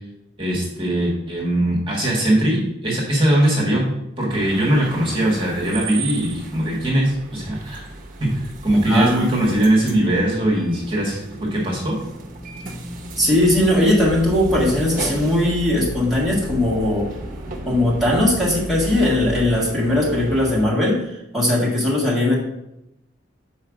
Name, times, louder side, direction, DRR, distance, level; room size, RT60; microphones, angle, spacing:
voice 1, 0.4-3.8 4.2-7.9 8.2-12.0, right 1 dB, 25° right, -3 dB, 1.6 m, -20 dB
sound 1, 4.3-20.7, right 1 dB, 45° right, 0.9 m, -34 dB
voice 2, 8.9-9.2 13.2-17.1 17.6-22.4, left 1 dB, ahead, -6 dB, 1.7 m, -19 dB
5.5 x 4.6 x 6.2 m, 0.86 s
head